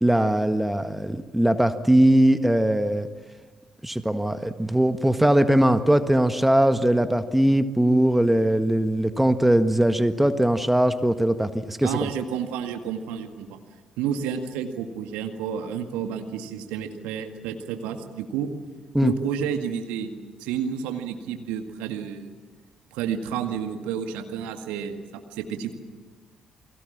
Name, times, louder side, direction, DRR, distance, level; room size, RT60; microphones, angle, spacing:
voice 1, 0.0-3.1 3.8-11.9 18.9-19.1, right 1 dB, 5° right, 10 dB, 1.6 m, -20 dB
voice 2, 11.8-13.6 14.0-18.5 19.0-20.1 20.4-22.3 22.9-25.7, right 8 dB, 70° right, 6 dB, 1.9 m, -30 dB
29.0 x 22.0 x 7.4 m, 1.3 s
figure-of-eight pair, 45°, 2 cm